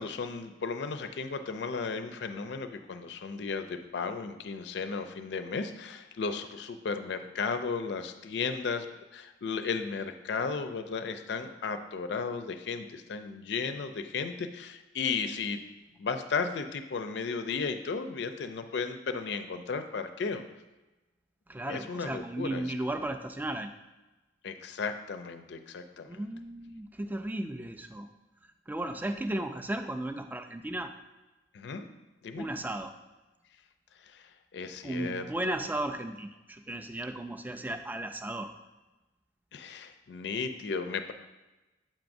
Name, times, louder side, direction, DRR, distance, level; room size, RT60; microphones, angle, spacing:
voice 1, 0.0-8.9 9.1-15.6 16.0-20.4 21.6-22.7 24.4-26.2 31.5-31.9 32.2-32.5 34.0-35.5 39.5-41.1, left 5 dB, 65° left, 9 dB, 0.4 m, -35 dB
voice 2, 21.5-23.7 26.1-28.1 28.7-30.9 32.4-32.9 34.8-38.5, right 1 dB, 10° right, 7 dB, 0.3 m, -35 dB
7.4 x 5.9 x 2.6 m, 1.1 s
head